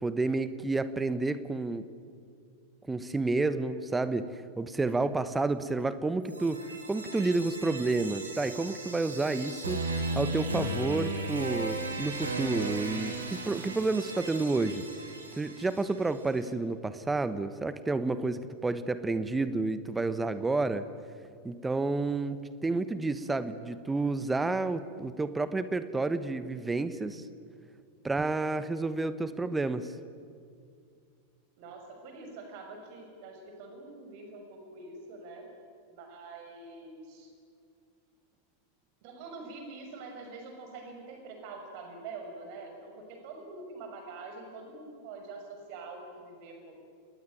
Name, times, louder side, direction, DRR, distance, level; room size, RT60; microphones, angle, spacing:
voice 1, 0.0-1.8 2.9-4.3 4.6-6.6 6.9-9.8 10.1-14.8 15.4-20.9 21.4-27.2 28.0-29.9, right 3 dB, 10° right, 13 dB, 1.2 m, -30 dB
sound 1, 6.2-16.2, right 2 dB, 75° right, 4.1 m, -36 dB
voice 2, 31.6-35.5 35.9-37.3 39.0-46.7, right 3 dB, 45° right, 4 dB, 6.4 m, -45 dB
29.0 x 19.5 x 9.3 m, 2.2 s
figure-of-eight pair, 90°, 0 cm